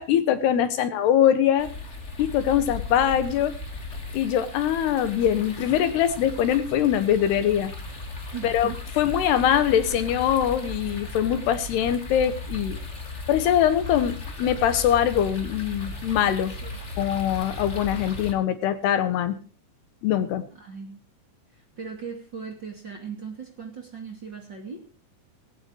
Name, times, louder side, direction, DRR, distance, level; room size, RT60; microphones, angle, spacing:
voice 1, 0.0-1.7 2.2-3.5 4.1-7.7 8.4-12.8 13.3-16.5 17.0-19.4 20.0-20.5, left 10 dB, 75° left, 12 dB, 3.2 m, -23 dB
sound 1, 1.6-18.3, left 2 dB, 20° left, 2.3 m, -36 dB
voice 2, 8.3-8.8 16.6-16.8 20.5-21.0 21.5-24.8, right 6 dB, 30° right, 3 dB, 2.6 m, -38 dB
18.5 x 17.0 x 3.0 m, 0.35 s
omnidirectional pair, 5.0 m